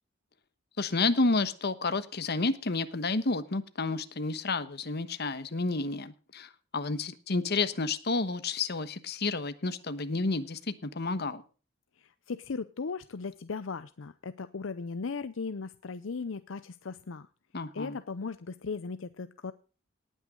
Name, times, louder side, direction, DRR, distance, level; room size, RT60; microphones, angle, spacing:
voice 1, 0.8-11.4 17.5-18.0, left 3 dB, 55° left, 12 dB, 1.2 m, -30 dB
voice 2, 12.0-17.3 17.7-19.5, left 4 dB, 80° left, 13 dB, 0.6 m, -37 dB
18.5 x 9.3 x 3.7 m, 0.36 s
head